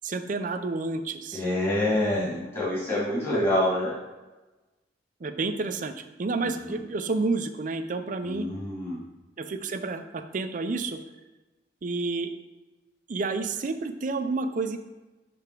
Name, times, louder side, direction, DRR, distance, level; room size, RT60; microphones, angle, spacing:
voice 1, 0.0-1.4 5.2-8.5 9.4-11.0 11.8-12.3 13.1-14.8, right 3 dB, 45° right, 8 dB, 0.4 m, -30 dB
voice 2, 1.3-3.9 6.4-6.8 8.2-9.0, left 1 dB, 25° left, -8 dB, 1.9 m, -27 dB
6.8 x 3.5 x 4.5 m, 1.1 s
head